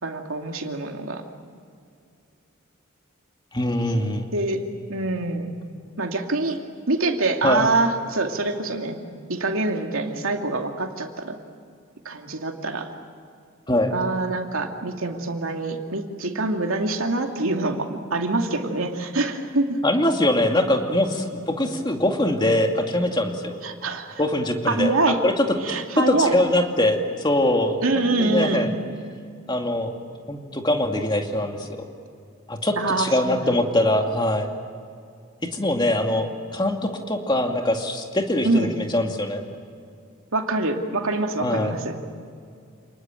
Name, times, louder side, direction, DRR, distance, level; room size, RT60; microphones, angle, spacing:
voice 1, 0.0-1.2 4.3-4.6 4.9-5.5 6.0-6.6 6.9-9.0 9.3-11.4 12.0-12.9 13.9-19.8 23.6-24.2 24.7-25.2 25.6-26.3 27.8-28.7 32.8-33.5 38.4-38.7 40.3-42.0, right 2 dB, 75° right, 3 dB, 2.6 m, -25 dB
voice 2, 3.5-4.3 7.4-7.6 13.7-13.9 19.8-23.6 24.2-28.7 29.5-29.9 30.3-31.7 32.5-34.5 35.5-39.4 41.4-41.7, left 1 dB, 20° left, 3 dB, 2.3 m, -23 dB
29.5 x 20.0 x 9.1 m, 2.4 s
head